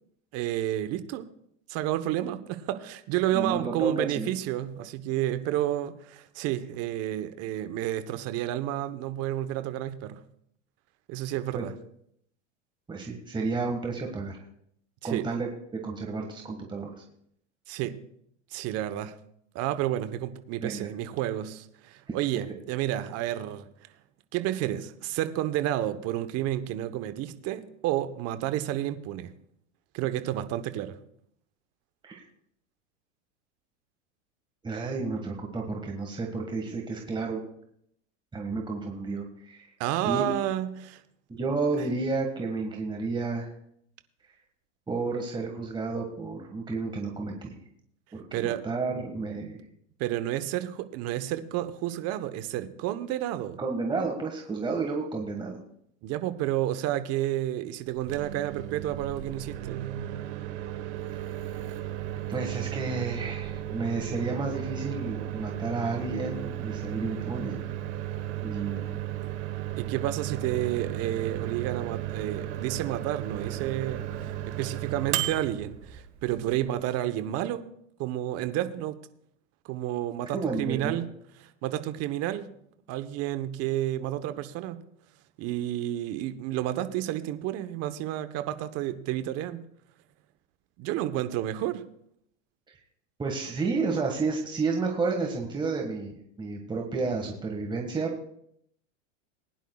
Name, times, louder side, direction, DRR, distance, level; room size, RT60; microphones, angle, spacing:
voice 1, 0.3-1.3 1.7-10.2 11.1-11.7 15.0-15.3 17.7-18.0 18.5-19.1 19.5-23.7 24.3-29.3 29.9-31.0 39.8-41.0 48.3-48.6 50.0-53.6 56.0-59.9 69.8-77.6 78.0-78.9 79.6-81.1 81.6-82.5 82.9-84.8 85.4-89.6 90.8-91.8, right 13 dB, 40° right, 11 dB, 1.0 m, -30 dB
voice 2, 3.3-4.3 11.5-11.7 12.9-14.4 15.0-15.5 15.8-17.0 20.6-20.9 22.1-22.2 32.0-32.2 34.6-37.4 38.3-39.7 40.0-40.3 41.3-43.5 44.9-47.6 48.1-49.6 53.6-55.6 61.1-61.7 62.3-67.6 68.4-68.9 80.3-81.0 92.7-92.8 93.2-98.1, right 4 dB, 10° right, 1 dB, 1.6 m, -31 dB
Microwave oven, 57.9-76.7, right 12 dB, 65° right, 1.4 m, -35 dB
20.5 x 10.5 x 2.3 m, 0.71 s
hypercardioid pair, 110°, 37 cm